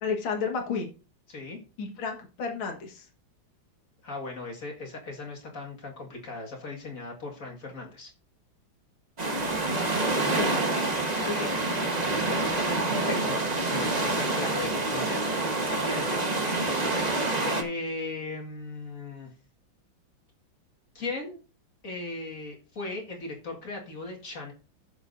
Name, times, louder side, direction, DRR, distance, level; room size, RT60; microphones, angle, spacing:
voice 1, 0.0-0.9 1.8-3.1 10.2-10.9 11.2-11.5 12.9-13.2 14.4-14.5, left 5 dB, 80° left, 3 dB, 2.3 m, -32 dB
voice 2, 1.3-1.6 4.0-8.1 12.0-12.6 13.3-13.4 13.7-15.3 15.6-16.2 17.4-19.3 20.9-21.4 21.8-24.5, left 3 dB, 40° left, 0 dB, 2.2 m, -37 dB
sound 1, 9.2-17.6, right 2 dB, 25° right, 1.1 m, -27 dB
15.0 x 7.1 x 2.6 m, 0.34 s
omnidirectional pair, 2.2 m